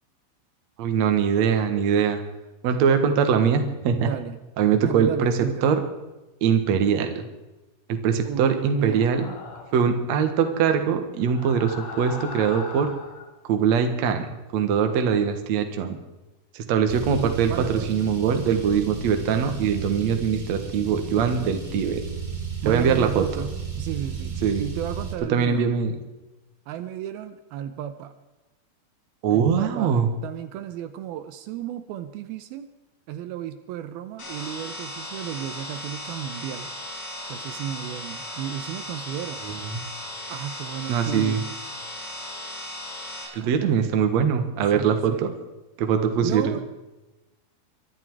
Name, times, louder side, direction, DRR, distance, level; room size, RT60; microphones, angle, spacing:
voice 1, 0.8-2.2 2.6-4.1 4.6-5.8 6.4-7.3 7.9-9.3 9.7-12.9 13.4-14.3 14.5-16.0 16.5-22.0 22.6-23.2 24.4-24.6 25.3-25.9 29.2-30.1 39.4-39.8 40.9-41.4 43.3-45.3 45.8-46.5, right 7 dB, 55° right, 7 dB, 2.3 m, -22 dB
voice 2, 4.0-4.4 4.7-5.7 8.2-9.1 17.5-17.9 20.9-21.4 22.6-23.5 23.7-25.7 26.7-28.1 29.3-30.0 30.2-32.7 33.1-36.7 37.3-39.4 40.3-41.6 43.4-43.7 44.5-45.4 46.2-46.6, right 10 dB, 80° right, 10 dB, 2.6 m, -34 dB
sound 1, 8.7-9.9 11.2-13.3, left 4 dB, 45° left, 2.3 m, -39 dB
Car, 16.9-25.1, right 5 dB, 25° right, 1.1 m, -34 dB
sound 2, 34.2-43.2, left 1 dB, 70° left, 8.3 m, -36 dB
23.5 x 11.5 x 4.7 m, 1.0 s
omnidirectional pair, 4.4 m